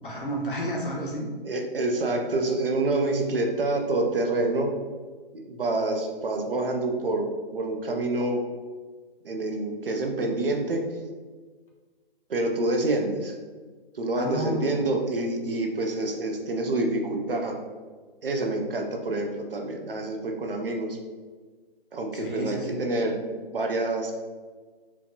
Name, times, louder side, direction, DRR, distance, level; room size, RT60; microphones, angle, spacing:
voice 1, 0.0-1.3 14.1-14.6 22.1-22.7, equal, 60° left, -2 dB, 1.0 m, -31 dB
voice 2, 1.4-4.7 5.3-7.3 7.5-8.4 9.2-10.8 12.3-13.3 13.9-17.6 18.2-21.0 21.9-24.1, right 2 dB, 65° right, 2 dB, 0.6 m, -27 dB
4.5 x 2.4 x 2.6 m, 1.4 s
figure-of-eight pair, 130°, 30 cm